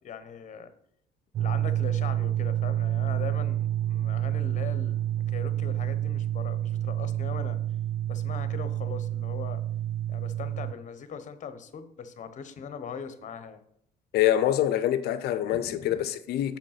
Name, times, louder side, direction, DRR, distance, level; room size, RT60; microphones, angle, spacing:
voice 1, 0.0-0.7 1.3-7.6 8.1-9.6 10.1-13.6 15.5-16.1, left 7 dB, 45° left, 0.9 m, -40 dB
sound 1, 1.3-10.7, right 12 dB, 45° right, 0.4 m, -29 dB
voice 2, 14.1-16.6, left 12 dB, 75° left, 0.6 m, -25 dB
7.1 x 5.2 x 5.8 m
cardioid pair, 110°, 17 cm